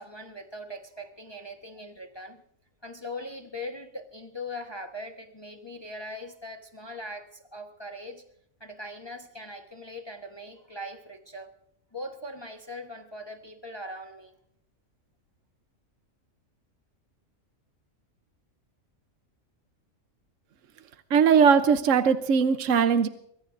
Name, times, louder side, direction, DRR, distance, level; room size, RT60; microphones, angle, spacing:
voice 1, 0.0-2.4 2.8-8.2 8.6-11.5 11.9-14.3, left 1 dB, 20° left, 3 dB, 1.2 m, -40 dB
voice 2, 21.1-23.1, right 6 dB, 70° right, 9 dB, 1.2 m, -20 dB
24.0 x 22.5 x 2.6 m, 0.72 s
omnidirectional pair, 1.4 m